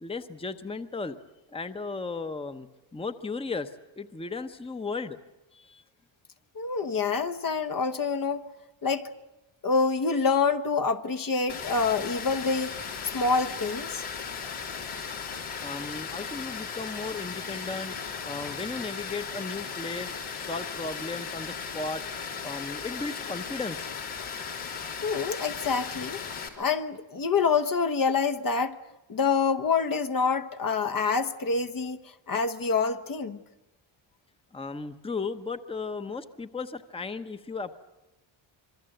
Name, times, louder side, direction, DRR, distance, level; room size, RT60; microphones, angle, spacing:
voice 1, 0.0-1.2 1.5-2.7 2.9-5.2 5.5-5.8 15.6-18.0 18.2-20.1 20.5-22.0 22.4-23.9 34.5-37.8, left 4 dB, 10° left, 0.9 m, -35 dB
voice 2, 6.5-8.4 8.8-9.1 9.6-12.7 13.1-14.0 25.0-26.2 26.6-28.8 29.1-32.0 32.3-33.4, left 5 dB, 45° left, 1.1 m, -26 dB
Water, 11.5-26.5, left 6 dB, 85° left, 3.8 m, -36 dB
26.0 x 23.0 x 7.9 m
cardioid pair, 100°, 49 cm